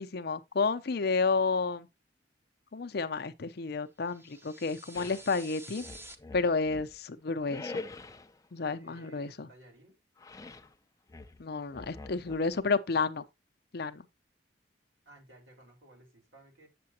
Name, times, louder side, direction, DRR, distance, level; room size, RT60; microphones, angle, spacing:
voice 1, 0.0-1.9 2.7-5.8 6.3-7.8 8.5-9.5 11.4-13.2 13.7-14.0, left 4 dB, 60° left, 0.6 m, -31 dB
sound 1, 4.0-6.2, right 1 dB, 15° right, 0.8 m, -49 dB
sound 2, 4.9-5.3 5.8-7.0 7.5-8.3 10.2-10.7 11.1-12.6, left 3 dB, 20° left, 0.5 m, -44 dB
voice 2, 8.7-9.9 11.8-12.6 15.0-16.7, right 1 dB, 80° right, 4.5 m, -57 dB
8.5 x 6.8 x 2.8 m
head